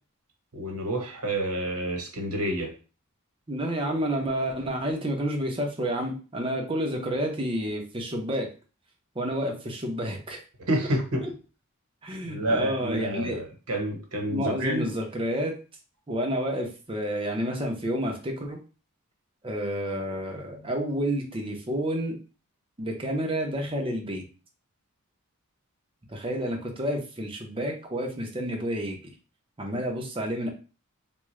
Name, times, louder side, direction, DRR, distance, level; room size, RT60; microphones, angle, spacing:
voice 1, 0.5-2.7 10.6-11.2 12.2-14.9, right 1 dB, 75° right, 2 dB, 1.1 m, -29 dB
voice 2, 3.5-8.5 9.1-10.4 11.2-11.3 12.0-13.4 14.3-15.5 16.1-18.6 19.4-22.2 22.8-24.2 26.1-29.0 29.6-30.5, equal, 25° right, 2 dB, 0.7 m, -30 dB
3.5 x 2.3 x 3.1 m, 0.35 s
head